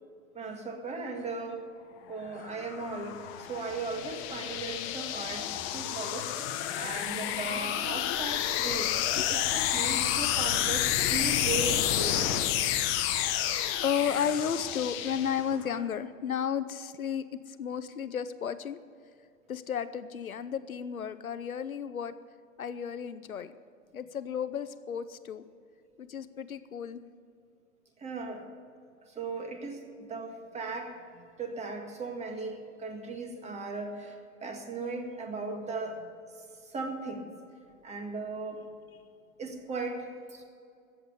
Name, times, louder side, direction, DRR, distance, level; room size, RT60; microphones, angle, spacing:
voice 1, 0.3-1.7 2.1-6.3 6.7-9.0 9.3-12.5 28.0-28.5 29.0-36.1 36.6-37.3 37.8-38.7 39.4-40.4, right 3 dB, 15° right, 4 dB, 1.8 m, -37 dB
sound 1, 2.2-15.7, left 11 dB, 30° left, 1.1 m, -30 dB
voice 2, 13.8-18.8 19.5-22.1 22.6-23.5 23.9-25.4 26.0-27.0, left 8 dB, 85° left, 13 dB, 0.8 m, -33 dB
14.5 x 8.1 x 8.0 m, 2.3 s
hypercardioid pair, 115°, 41 cm